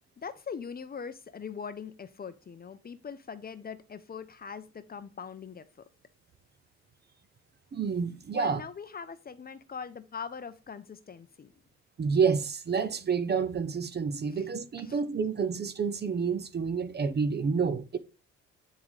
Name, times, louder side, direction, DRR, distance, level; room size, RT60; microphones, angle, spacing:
voice 1, 0.2-5.8 8.3-11.6 14.3-14.5 14.8-15.0, left 6 dB, 30° left, 0.6 m, -41 dB
voice 2, 7.7-8.6 12.0-18.0, right 5 dB, 35° right, 0.6 m, -29 dB
8.9 x 3.7 x 3.2 m
cardioid pair, 90°, 30 cm